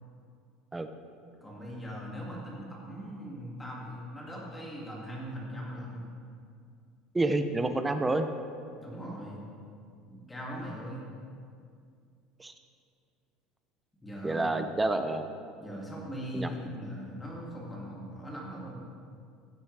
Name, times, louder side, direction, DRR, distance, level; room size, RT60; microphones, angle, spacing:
voice 1, 1.4-6.1 8.8-9.4 10.1-11.1 14.0-14.7 15.6-18.8, equal, 10° left, -4 dB, 2.2 m, -40 dB
voice 2, 7.1-8.3 12.4-12.5 14.2-15.3 16.3-16.5, right 2 dB, 10° right, 8 dB, 0.5 m, -28 dB
15.5 x 8.2 x 3.3 m, 2.3 s
cardioid pair, 155°, 0 cm